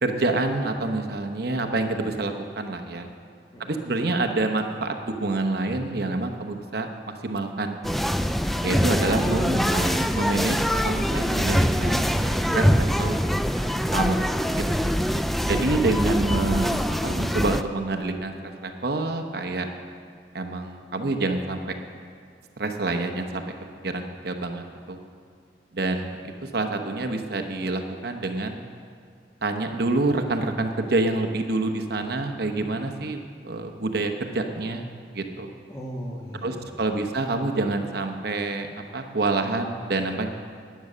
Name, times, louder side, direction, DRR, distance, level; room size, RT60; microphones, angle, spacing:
voice 1, 0.0-3.1 3.6-8.1 8.6-10.6 10.8-13.2 13.9-14.2 14.5-14.6 15.5-19.7 20.3-21.8 22.6-23.4 23.8-25.0 25.7-28.7 29.4-33.2 33.4-34.9 35.1-35.5 36.4-40.3, right 2 dB, 60° right, 6 dB, 1.0 m, -27 dB
voice 2, 3.5-3.9 14.6-15.0 35.7-37.2, equal, 20° left, -5 dB, 1.6 m, -38 dB
sound 1, 7.8-17.6, equal, ahead, 0.3 m, -24 dB
12.5 x 9.4 x 6.7 m, 2.2 s
head